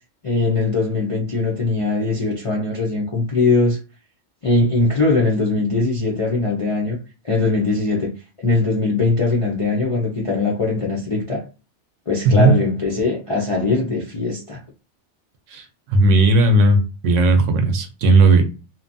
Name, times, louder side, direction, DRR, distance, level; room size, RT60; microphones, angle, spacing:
voice 1, 0.2-3.8 4.4-7.0 7.2-8.1 8.4-11.5 12.1-14.6, left 3 dB, 40° left, 0.5 m, -20 dB
voice 2, 15.9-18.4, right 2 dB, 90° right, 1.0 m, -15 dB
2.8 x 2.2 x 2.6 m
omnidirectional pair, 1.2 m